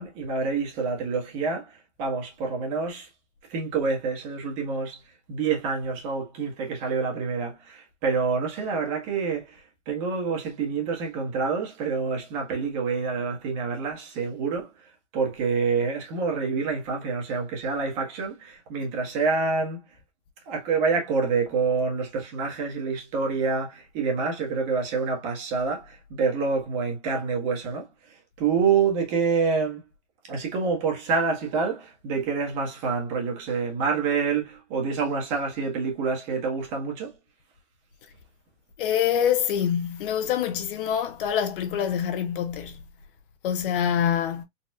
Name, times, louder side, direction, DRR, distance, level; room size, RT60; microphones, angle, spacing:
voice 1, 0.0-3.1 3.5-5.0 5.3-19.8 20.5-29.8 30.3-37.2, right 5 dB, 35° right, 1.4 m, -27 dB
voice 2, 38.8-42.8 43.4-44.4, left 9 dB, 50° left, 0.7 m, -25 dB
4.1 x 2.4 x 2.4 m
hypercardioid pair, 150°, 35 cm